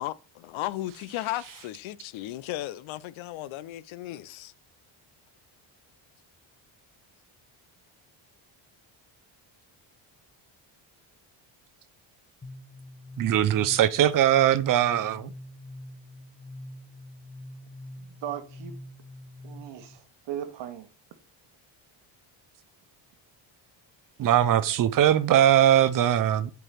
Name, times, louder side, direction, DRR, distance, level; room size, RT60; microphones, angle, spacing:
voice 1, 0.0-4.5, left 15 dB, 80° left, 0.6 m, -35 dB
sound 1, 12.4-20.0, left 1 dB, 15° left, 0.8 m, -44 dB
voice 2, 13.2-15.3 24.2-26.5, right 11 dB, 45° right, 0.5 m, -21 dB
voice 3, 18.0-18.7 19.4-20.9, right 10 dB, 65° right, 1.0 m, -38 dB
5.0 x 4.7 x 5.6 m
cardioid pair, 170°, 47 cm